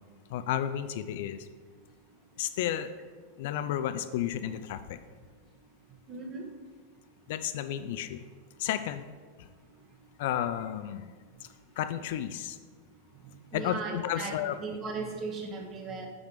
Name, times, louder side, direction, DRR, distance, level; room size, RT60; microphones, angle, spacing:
voice 1, 0.3-1.5 2.4-2.9 3.4-5.0 7.3-8.2 8.6-9.0 10.2-11.1 11.8-12.6 13.5-14.6, left 11 dB, 50° left, 11 dB, 0.3 m, -32 dB
voice 2, 6.1-6.5 13.5-16.1, right 4 dB, 30° right, 2 dB, 1.2 m, -37 dB
6.1 x 5.1 x 4.8 m, 1.5 s
figure-of-eight pair, 90°, 0 cm